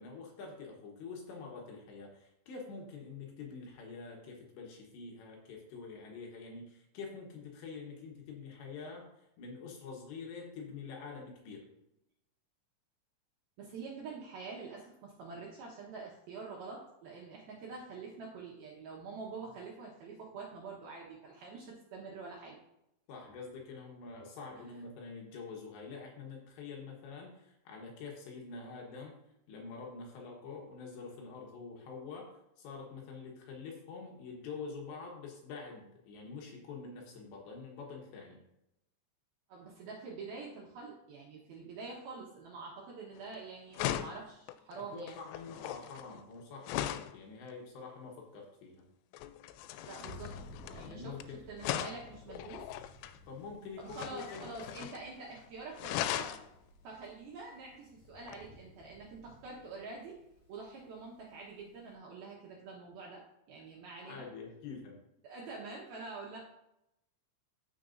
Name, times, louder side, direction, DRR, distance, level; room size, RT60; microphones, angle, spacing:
voice 1, 0.0-9.0 9.4-11.6 23.1-29.1 29.5-38.4 44.9-48.8 50.8-51.4 53.3-54.5 64.0-65.0, left 4 dB, 70° left, 0 dB, 3.1 m, -46 dB
voice 2, 13.6-22.6 39.5-45.2 49.8-50.3 50.7-51.1 51.5-52.7 53.8-56.3 56.8-60.2 60.5-63.2 63.5-64.3 65.2-66.4, right 4 dB, 70° right, -3 dB, 2.3 m, -46 dB
Desktop life + slam, 43.2-43.4 43.7-47.2 49.1-51.2 51.6-53.2 53.9-55.1 55.3-55.4 55.8-56.5 58.3-58.4, left 12 dB, 90° left, 3.2 m, -39 dB
Thunder, 50.0-61.9, left 2 dB, 40° left, 4.7 m, -56 dB
14.5 x 5.9 x 2.6 m, 0.83 s
omnidirectional pair, 5.8 m